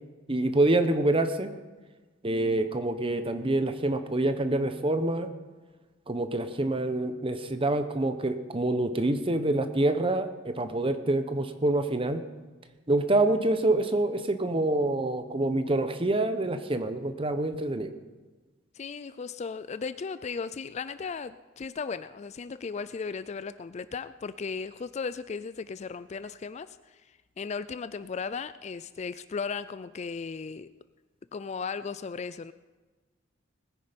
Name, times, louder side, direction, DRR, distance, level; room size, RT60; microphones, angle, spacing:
voice 1, 0.3-1.5 2.2-5.3 6.1-12.2 12.9-17.9, right 2 dB, 25° right, 9 dB, 0.9 m, -26 dB
voice 2, 18.8-26.8 27.4-30.7 31.3-32.5, left 5 dB, 35° left, 14 dB, 0.3 m, -36 dB
20.5 x 9.6 x 5.2 m, 1.3 s
head